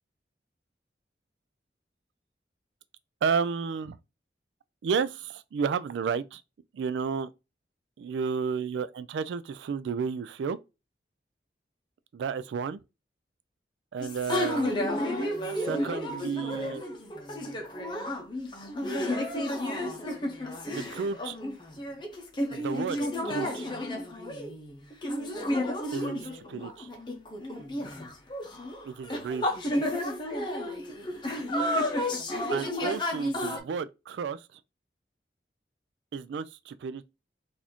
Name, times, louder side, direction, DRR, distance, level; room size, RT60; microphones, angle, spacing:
voice 1, 3.2-4.0 4.8-6.4 6.7-7.3 8.0-10.6 12.1-12.8 13.9-14.9 15.6-16.8 20.7-21.4 22.5-23.7 25.9-26.9 28.8-29.6 32.5-34.6 36.1-37.0, right 6 dB, 80° right, 0.3 m, -32 dB
sound 1, 14.0-33.6, left 1 dB, 25° left, 0.7 m, -32 dB
3.9 x 2.5 x 2.9 m
head